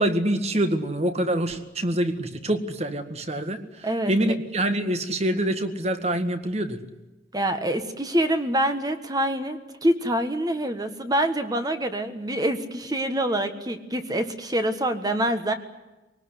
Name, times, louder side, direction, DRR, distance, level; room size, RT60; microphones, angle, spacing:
voice 1, 0.0-6.8, right 1 dB, 35° right, 9 dB, 1.9 m, -25 dB
voice 2, 3.8-4.3 7.3-15.5, right 1 dB, 20° right, 8 dB, 1.5 m, -26 dB
23.5 x 19.0 x 9.9 m, 1.1 s
head